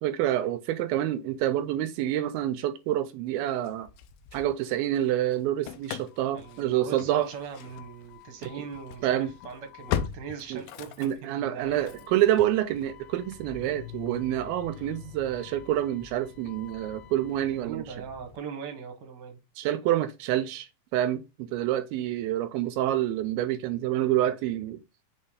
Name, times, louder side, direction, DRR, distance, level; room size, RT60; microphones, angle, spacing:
voice 1, 0.0-3.9 4.3-7.3 8.4-8.7 9.0-9.3 10.5-10.6 11.0-17.8 19.6-24.8, right 12 dB, 85° right, 2.5 m, -27 dB
Engine starting / Slam, 3.6-5.0 5.3-18.4, left 10 dB, 85° left, 2.5 m, -41 dB
voice 2, 6.3-12.0 14.7-15.0 17.5-19.4, right 6 dB, 55° right, 1.2 m, -40 dB
6.7 x 3.0 x 5.0 m
omnidirectional pair, 4.2 m